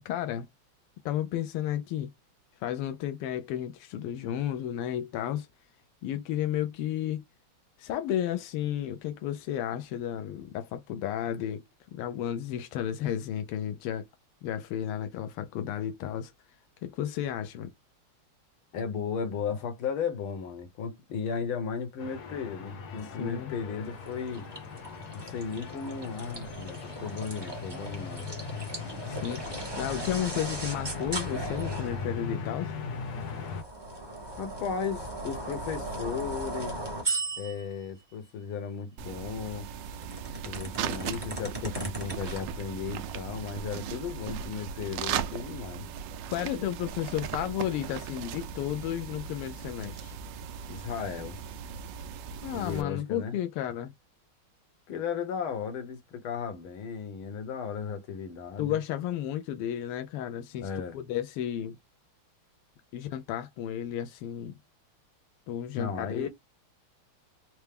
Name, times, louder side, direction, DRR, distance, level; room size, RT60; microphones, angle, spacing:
voice 1, 0.0-0.5 1.0-2.1 2.6-5.5 6.0-7.2 7.8-11.6 11.9-14.0 14.4-16.3 16.8-17.7 23.2-23.5 29.1-32.8 46.3-50.1 52.4-53.9 58.6-61.8 62.9-64.6 65.5-66.3, left 11 dB, 90° left, 1.5 m, -33 dB
voice 2, 18.7-24.5 25.1-28.3 34.4-36.8 37.4-39.7 40.5-45.9 50.7-51.4 52.5-53.4 54.9-58.8 60.6-61.0 65.8-66.3, left 6 dB, 75° left, 1.8 m, -35 dB
sound 1, 22.0-33.6, left 4 dB, 55° left, 1.2 m, -39 dB
sound 2, 23.9-32.1 33.0-37.8 39.5-42.4, right 2 dB, 15° right, 1.0 m, -38 dB
sound 3, 39.0-52.8, right 8 dB, 75° right, 1.1 m, -38 dB
4.5 x 2.0 x 3.4 m
omnidirectional pair, 2.4 m